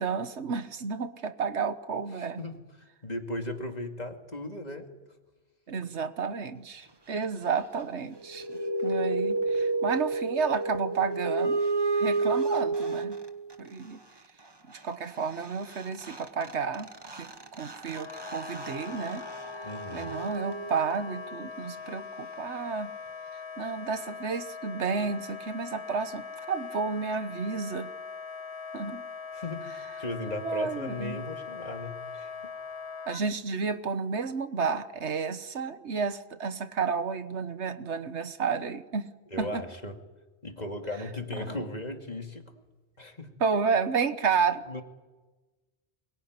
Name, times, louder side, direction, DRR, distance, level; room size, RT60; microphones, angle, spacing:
voice 1, 0.0-2.4 5.7-8.4 8.8-11.6 11.9-13.2 13.6-14.0 14.7-16.9 17.2-19.3 19.9-22.9 23.6-27.9 28.7-29.0 30.3-31.2 33.1-39.1 39.4-39.6 41.4-41.5 43.4-44.8, right 5 dB, 90° right, 11 dB, 1.5 m, -31 dB
voice 2, 2.1-4.9 19.6-20.2 29.3-32.5 39.3-40.0 40.4-42.5 43.0-43.4 44.6-44.8, left 2 dB, 40° left, 4 dB, 2.5 m, -37 dB
sound 1, 8.2-13.5 15.4-15.5 15.7-21.2, right 3 dB, 25° right, 1.4 m, -31 dB
Wind instrument woodwind instrument, 18.0-33.2, left 5 dB, 70° left, 1.6 m, -41 dB
23.5 x 22.0 x 9.6 m, 1.2 s
omnidirectional pair, 1.1 m